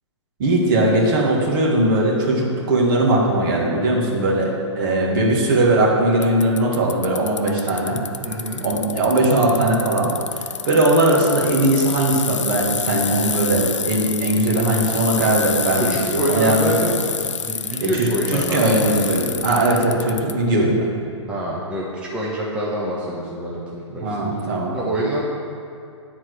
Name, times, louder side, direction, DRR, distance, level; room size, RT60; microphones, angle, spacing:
voice 1, 0.4-8.0 8.6-16.8 17.8-21.0 24.0-24.8, right 1 dB, 45° right, -3 dB, 1.9 m, -19 dB
Bicycle, 6.2-20.3, left 6 dB, 75° left, 0.5 m, -28 dB
voice 2, 8.2-8.6 15.7-17.0 17.3-18.9 21.3-24.1 24.7-25.2, equal, 5° right, -6 dB, 1.0 m, -26 dB
9.3 x 4.3 x 6.4 m, 2.4 s
figure-of-eight pair, 120°, 16 cm